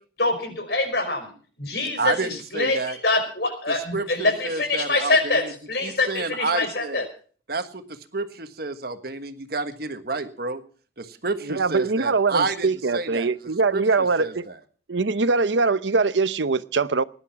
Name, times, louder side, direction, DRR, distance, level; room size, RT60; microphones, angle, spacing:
voice 1, 0.2-1.3 1.6-2.1 2.5-5.4 5.7-7.0, left 2 dB, 60° left, 5.2 m, -24 dB
voice 2, 2.0-3.0 3.7-5.5 5.8-7.1 7.5-10.6 11.0-13.3 13.7-14.6, right 3 dB, 55° right, 1.4 m, -30 dB
voice 3, 11.4-14.4 14.9-17.0, right 4 dB, 80° right, 0.8 m, -22 dB
19.5 x 11.0 x 5.9 m
head